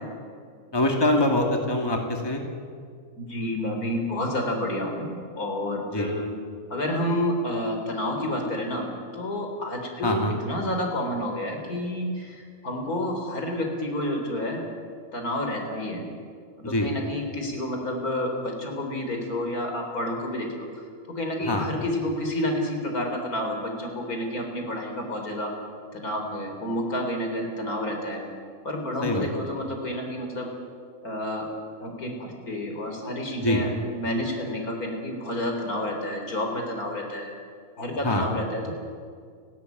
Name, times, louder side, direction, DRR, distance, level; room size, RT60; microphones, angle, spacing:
voice 1, 0.7-2.4 5.9-6.1 10.0-10.4 16.6-16.9 21.4-21.7 29.0-29.3 33.4-33.6 38.0-38.3, left 1 dB, 15° left, 2 dB, 2.4 m, -24 dB
voice 2, 3.2-6.3 6.7-8.9 9.1-14.7 15.1-16.0 16.6-25.5 25.9-28.2 28.6-30.5 31.0-31.5 31.8-33.7 33.9-37.3 37.8-38.7, left 1 dB, 75° left, 3 dB, 4.2 m, -29 dB
30.0 x 12.0 x 9.3 m, 2.1 s
omnidirectional pair, 1.6 m